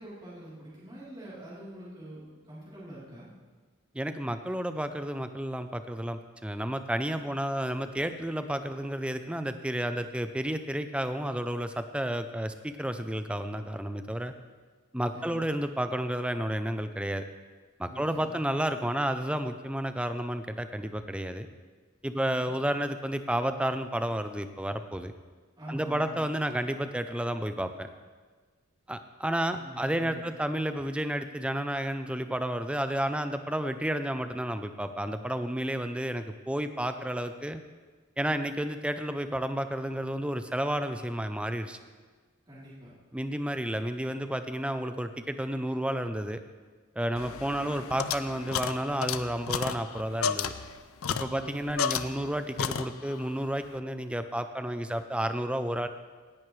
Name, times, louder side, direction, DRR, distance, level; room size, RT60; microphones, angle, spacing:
voice 1, 0.0-3.3 15.1-15.5 17.9-18.5 22.2-22.5 25.6-26.3 29.5-30.2 42.5-42.9 51.2-51.5, equal, 20° right, -10 dB, 3.5 m, -45 dB
voice 2, 3.9-14.3 14.9-17.2 17.8-21.5 22.0-25.1 25.7-27.9 28.9-37.6 38.2-41.8 43.1-46.4 47.0-50.5 51.1-55.9, right 1 dB, 5° right, 9 dB, 0.5 m, -31 dB
sound 1, 47.2-52.3 52.6-53.3, left 7 dB, 80° left, 0.5 m, -33 dB
17.5 x 10.5 x 3.2 m, 1.4 s
head